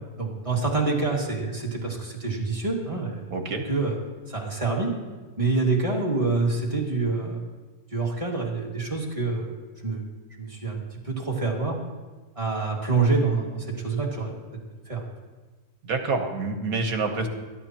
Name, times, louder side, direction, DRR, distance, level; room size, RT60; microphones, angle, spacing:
voice 1, 0.2-3.2 3.7-4.0 4.3-4.9 5.4-7.4 7.9-10.0 10.3-11.8 12.4-14.3 14.9-15.0, right 3 dB, 20° right, -2 dB, 2.1 m, -26 dB
voice 2, 3.3-3.6 15.8-17.3, right 3 dB, 65° right, 5 dB, 1.7 m, -27 dB
21.5 x 11.5 x 3.0 m, 1.3 s
omnidirectional pair, 1.6 m